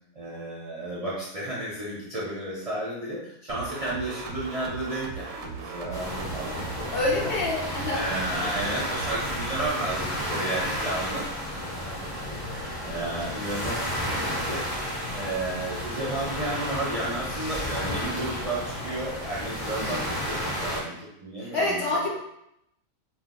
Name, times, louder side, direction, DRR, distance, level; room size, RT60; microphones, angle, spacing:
voice 1, 0.1-6.9 7.2-7.3 7.9-11.5 11.8-12.0 12.3-14.7 15.1-22.1, right 1 dB, 45° right, -7 dB, 0.4 m, -33 dB
sound 1, 3.5-9.7, right 4 dB, 80° right, 1.0 m, -38 dB
sound 2, 5.9-20.8, equal, 25° left, 0.5 m, -32 dB
voice 2, 6.9-8.0 19.8-20.1 21.4-22.1, left 2 dB, 50° left, -4 dB, 1.0 m, -27 dB
2.5 x 2.2 x 3.6 m, 0.79 s
omnidirectional pair, 1.5 m